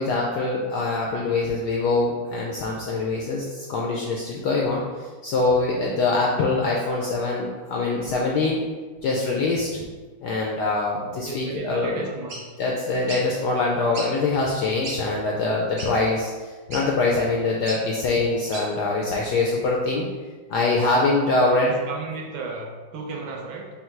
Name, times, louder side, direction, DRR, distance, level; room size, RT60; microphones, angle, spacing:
voice 1, 0.0-4.8 5.2-8.6 9.0-9.8 10.2-12.0 12.6-20.1 20.5-21.8, left 3 dB, 80° left, -2 dB, 0.9 m, -24 dB
voice 2, 11.2-12.4 21.6-23.7, right 3 dB, 75° right, 0 dB, 1.5 m, -34 dB
sound 1, 12.3-12.4 13.1-13.2 13.9-14.1 14.6-14.7 14.8-15.0 15.8-15.9 16.7-16.9 17.7-17.8 18.5-18.7, right 2 dB, 60° right, 0.7 m, -33 dB
5.4 x 2.1 x 4.4 m, 1.4 s
omnidirectional pair, 2.3 m